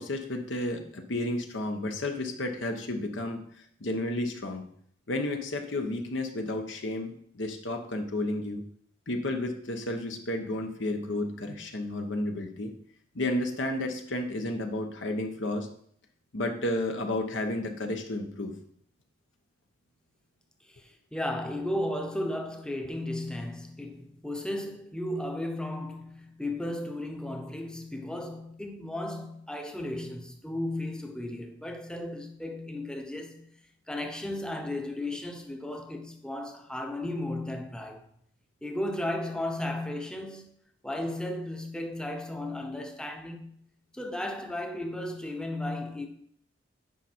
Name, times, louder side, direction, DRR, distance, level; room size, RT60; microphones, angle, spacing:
voice 1, 0.0-3.4 3.8-4.6 5.1-8.6 9.1-12.7 13.1-15.7 16.3-18.5, left 1 dB, 70° left, 1.0 m, -32 dB
voice 2, 20.7-33.5 33.9-38.1 38.6-40.5 40.8-43.6 43.9-46.1, left 1 dB, 5° left, 0.9 m, -35 dB
8.9 x 5.5 x 4.4 m
head